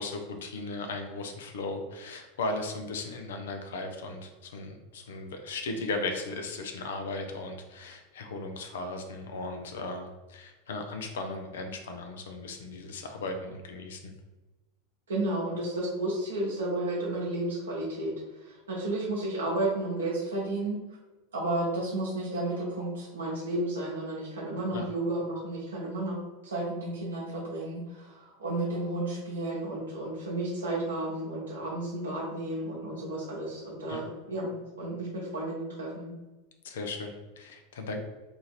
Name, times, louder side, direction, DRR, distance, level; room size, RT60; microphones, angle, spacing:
voice 1, 0.0-14.0 24.7-24.9 33.9-34.0 36.6-38.0, left 2 dB, 70° left, 5 dB, 0.5 m, -36 dB
voice 2, 15.1-18.1 18.4-20.8 21.3-26.2 26.4-36.1, right 2 dB, 80° right, -5 dB, 0.8 m, -32 dB
2.8 x 2.5 x 4.1 m, 1.1 s
figure-of-eight pair, 85°, 0 cm